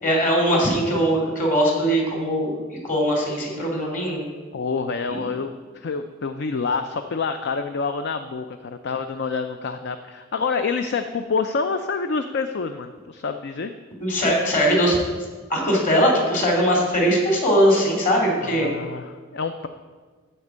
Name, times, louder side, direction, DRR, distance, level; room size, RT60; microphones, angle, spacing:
voice 1, 0.0-4.2 5.1-5.2 14.0-15.0 15.5-18.7, equal, 40° left, 0 dB, 2.8 m, -20 dB
voice 2, 4.5-13.7 14.3-14.4 18.4-19.7, left 4 dB, 55° left, 8 dB, 0.5 m, -27 dB
12.5 x 4.4 x 8.2 m, 1.4 s
head